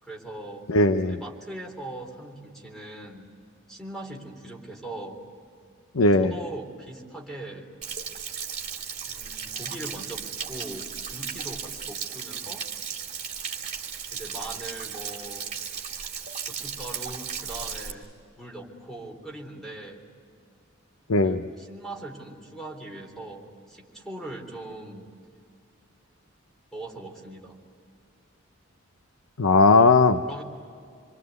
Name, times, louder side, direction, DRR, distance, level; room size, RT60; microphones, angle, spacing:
voice 1, 0.0-0.7 1.0-3.3 3.7-5.2 6.2-7.7 9.1-12.6 14.1-15.6 16.5-18.1 18.4-20.0 21.2-25.1 26.7-27.5 30.3-30.4, right 1 dB, ahead, 0 dB, 3.9 m, -40 dB
voice 2, 0.7-1.2 5.9-6.3 21.1-21.4 29.4-30.2, left 3 dB, 85° left, 8 dB, 0.8 m, -18 dB
Stream / Splash splatter / Trickle dribble, 7.8-17.9, right 7 dB, 35° right, 2.8 m, -35 dB
27.0 x 24.5 x 8.2 m, 2.3 s
head